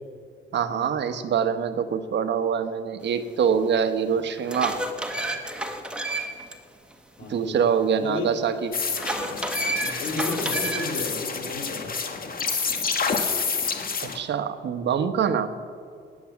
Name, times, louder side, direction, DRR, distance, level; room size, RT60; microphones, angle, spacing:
voice 1, 0.5-4.8 7.3-8.7 14.0-15.5, right 7 dB, 60° right, 9 dB, 1.1 m, -24 dB
sound 1, 3.5-3.6 4.2-6.5 6.9-7.0 8.9-11.0, right 1 dB, 5° right, 1.6 m, -30 dB
voice 2, 7.2-7.6 8.0-8.3 9.8-11.9, left 2 dB, 80° left, 0 dB, 3.5 m, -32 dB
sound 2, 8.7-14.2, left 5 dB, 45° left, 1.8 m, -28 dB
19.0 x 8.6 x 7.3 m, 2.3 s
cardioid pair, 90°, 20 cm